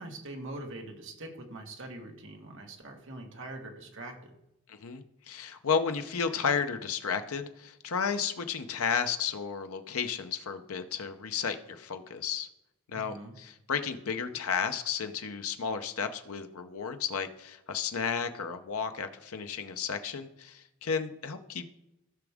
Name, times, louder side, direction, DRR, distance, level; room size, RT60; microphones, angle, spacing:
voice 1, 0.0-4.3 12.9-13.3, right 2 dB, 55° right, 2 dB, 1.5 m, -43 dB
voice 2, 4.7-12.5 12.9-21.7, left 6 dB, 80° left, 8 dB, 0.7 m, -33 dB
15.5 x 6.1 x 3.5 m, 0.87 s
head